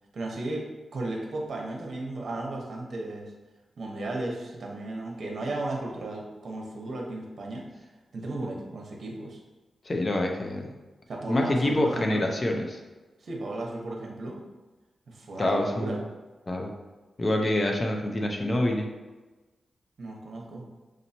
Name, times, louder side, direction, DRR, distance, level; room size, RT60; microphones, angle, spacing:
voice 1, 0.1-3.3 3.8-7.7 8.1-9.4 11.1-12.3 13.2-14.4 15.1-16.0 20.0-20.6, right 2 dB, 65° right, 0 dB, 1.0 m, -35 dB
voice 2, 9.9-10.7 11.3-12.8 15.4-16.0 16.5-16.7 17.2-18.9, left 1 dB, 35° left, 2 dB, 0.7 m, -26 dB
6.3 x 3.0 x 2.8 m, 1.2 s
cardioid pair, 90°, 0 cm